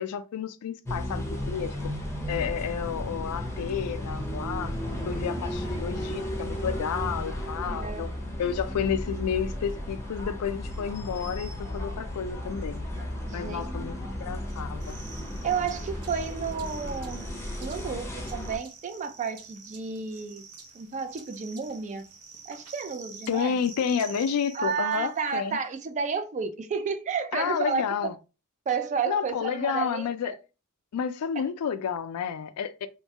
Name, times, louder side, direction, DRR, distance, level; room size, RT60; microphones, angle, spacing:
voice 1, 0.0-1.8 2.3-4.8 5.1-8.1 8.4-12.8 13.3-15.0 23.3-25.6 27.3-28.1 29.1-30.3 30.9-32.9, left 7 dB, 75° left, 0.3 m, -30 dB
sound 1, 0.9-18.6, left 1 dB, 10° left, 0.6 m, -34 dB
voice 2, 7.6-8.1 13.3-13.7 14.1-14.2 15.4-17.3 17.6-20.4 20.7-22.0 22.5-23.6 24.5-27.9 28.7-30.4 31.4-31.5, right 6 dB, 30° right, 0.3 m, -31 dB
sound 2, 14.5-25.4, right 5 dB, 75° right, 0.7 m, -48 dB
3.1 x 2.2 x 2.7 m
head